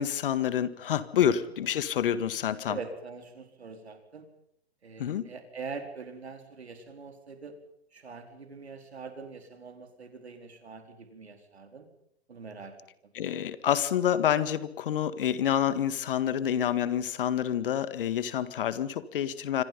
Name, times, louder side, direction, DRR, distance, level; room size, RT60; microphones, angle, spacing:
voice 1, 0.0-2.8 5.0-5.3 13.1-19.6, left 9 dB, 55° left, 13 dB, 2.0 m, -28 dB
voice 2, 2.7-4.2 4.8-7.6 7.9-11.9 12.3-12.7 13.0-13.1, right 4 dB, 75° right, 5 dB, 4.5 m, -43 dB
27.5 x 25.5 x 5.6 m, 0.71 s
figure-of-eight pair, 115°, 32 cm